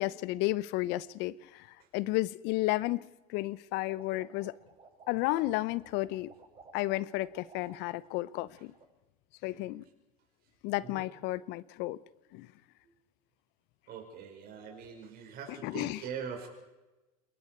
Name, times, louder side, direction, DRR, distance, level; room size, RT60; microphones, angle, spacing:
voice 1, 0.0-1.7 1.9-4.5 5.1-6.3 6.7-8.7 9.4-9.8 10.6-12.0 12.3-12.5 15.5-16.0, left 18 dB, 60° left, 0.9 m, -32 dB
sound 1, 3.7-8.1 8.3-8.8, right 4 dB, 25° right, 7.1 m, -56 dB
voice 2, 13.9-16.5, right 7 dB, 50° right, 5.3 m, -42 dB
27.5 x 22.0 x 4.7 m
hypercardioid pair, 85°, 20 cm